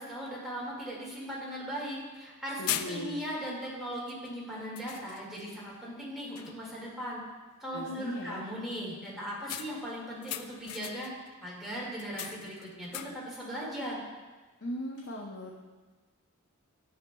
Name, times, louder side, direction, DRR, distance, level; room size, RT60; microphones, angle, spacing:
voice 1, 0.0-2.6 2.9-7.2 7.6-11.1 11.4-14.0, equal, ahead, -7 dB, 2.0 m, -38 dB
sound 1, 0.8-0.9 1.3-1.4 2.1-2.3 2.7-3.4 4.1-4.3 4.8-5.5 5.9-6.1 6.4-6.8 9.5-11.3 11.9-13.4, left 10 dB, 90° left, 0.4 m, -39 dB
voice 2, 2.6-3.2 7.7-8.4 14.6-15.5, equal, 55° left, -1 dB, 0.6 m, -38 dB
11.0 x 6.4 x 2.3 m, 1.3 s
head